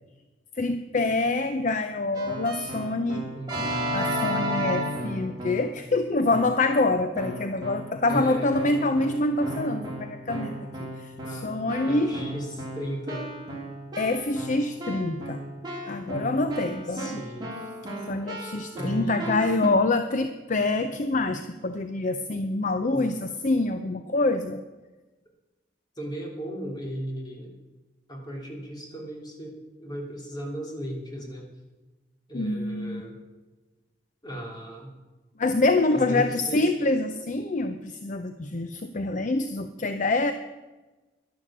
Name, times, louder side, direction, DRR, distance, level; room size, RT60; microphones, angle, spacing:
voice 1, 0.6-3.3 3.9-10.5 11.0-12.1 14.0-15.4 15.9-17.2 18.1-24.6 32.3-33.0 35.4-40.3, left 2 dB, 45° left, 9 dB, 0.6 m, -26 dB
Keyboard (musical), 2.1-5.8 6.3-6.8 7.1-19.7, equal, 25° right, 3.2 m, -34 dB
voice 2, 8.1-8.5 11.2-13.3 16.9-17.5 18.7-19.4 22.8-23.1 26.0-27.5 28.1-31.5 32.3-33.2 34.2-34.9 35.9-36.7, equal, 25° left, 0 dB, 3.0 m, -36 dB
11.5 x 11.0 x 7.4 m, 1.2 s
head